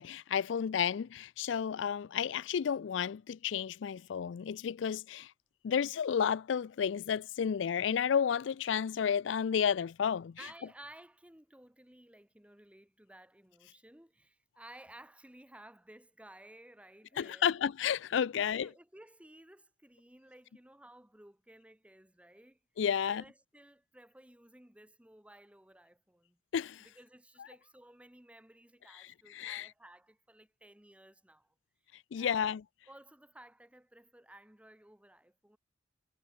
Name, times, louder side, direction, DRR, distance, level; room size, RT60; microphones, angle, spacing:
voice 1, 0.0-5.3 5.6-10.4 17.2-18.7 22.8-23.2 26.5-26.9 29.3-29.7 32.1-32.6, left 7 dB, 75° left, 0.4 m, -31 dB
voice 2, 10.4-17.6 18.2-22.6 23.0-26.4 26.8-31.5 31.9-32.5 32.9-35.6, right 1 dB, 5° right, 1.3 m, -56 dB
head